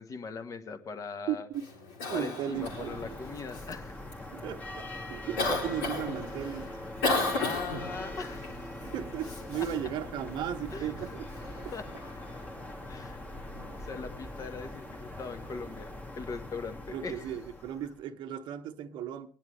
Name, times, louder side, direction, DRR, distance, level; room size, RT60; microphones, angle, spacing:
voice 1, 0.0-1.5 2.1-4.0 7.4-8.6 9.5-9.7 10.7-11.1 11.7-11.9 12.9-13.2 13.8-17.4, left 4 dB, 35° left, 1.5 m, -40 dB
voice 2, 1.3-1.6 2.1-3.0 4.3-6.7 8.8-11.3 13.5-13.7 16.9-19.3, right 10 dB, 50° right, 0.9 m, -36 dB
Cough, 1.5-16.0, left 2 dB, 70° left, 3.3 m, -38 dB
sound 1, 2.5-18.0, left 1 dB, 15° left, 1.7 m, -42 dB
22.0 x 10.5 x 3.2 m
figure-of-eight pair, 65°, 10 cm